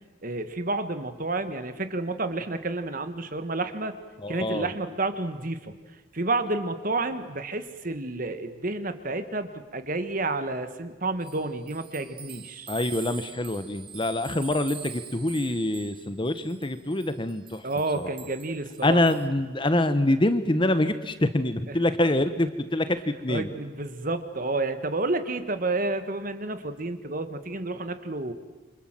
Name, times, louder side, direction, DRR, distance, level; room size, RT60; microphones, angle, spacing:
voice 1, 0.2-4.0 4.3-5.8 6.1-12.7 17.6-19.0 23.3-28.3, right 2 dB, 45° right, 10 dB, 1.7 m, -30 dB
voice 2, 4.2-4.7 12.7-17.6 18.0-18.1 18.8-23.5, left 1 dB, 25° left, 11 dB, 1.1 m, -25 dB
sound 1, 11.2-19.3, right 8 dB, 30° right, 1.3 m, -44 dB
28.0 x 26.0 x 7.7 m, 1.2 s
head